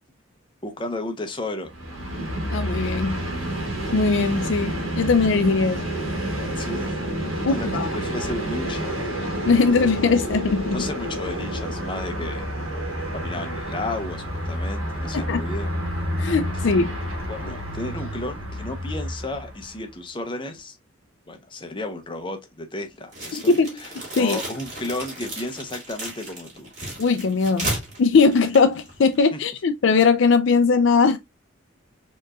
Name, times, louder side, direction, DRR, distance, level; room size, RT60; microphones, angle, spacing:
voice 1, 0.6-1.7 6.6-7.0 7.5-9.0 10.7-12.5 13.1-15.7 17.3-20.8 21.3-26.7 29.3-29.4, left 2 dB, 25° left, 0.7 m, -33 dB
Train, 1.7-19.8, equal, 80° right, 1.3 m, -29 dB
voice 2, 2.5-3.2 3.9-5.8 7.4-7.9 9.5-10.9 15.1-15.4 16.2-16.9 23.3-23.7 24.2-24.4 27.0-27.7 28.0-31.2, left 4 dB, 65° left, 0.4 m, -20 dB
sound 1, 23.1-29.2, right 1 dB, 35° right, 2.1 m, -34 dB
4.4 x 3.0 x 2.4 m
head